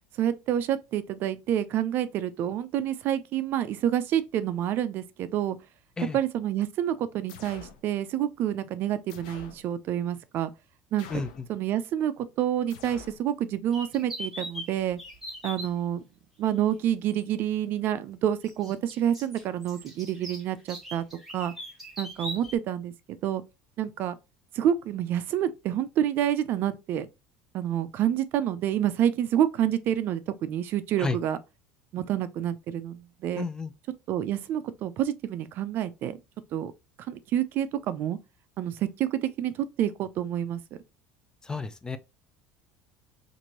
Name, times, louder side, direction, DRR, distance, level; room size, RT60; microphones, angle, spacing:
voice 1, 0.2-5.6 6.1-10.5 10.9-11.1 11.5-15.0 15.4-16.0 16.4-21.0 21.3-21.5 22.0-23.4 23.8-24.1 24.5-27.1 27.5-31.4 31.9-33.4 34.1-36.2 36.5-36.7 37.1-38.2 38.6-40.6, right 10 dB, 50° right, 0.4 m, -28 dB
sound 1, 7.3-7.8 9.1-9.6 11.0-11.5 12.7-13.2, left 6 dB, 90° left, 0.6 m, -46 dB
voice 2, 11.1-11.4 31.0-31.2 33.4-33.7 41.4-42.0, left 4 dB, 15° left, 0.4 m, -31 dB
sound 2, 13.7-15.7 17.1-17.2 18.5-22.5, equal, 5° right, 1.4 m, -40 dB
2.9 x 2.5 x 2.8 m
supercardioid pair, 115°, 4 cm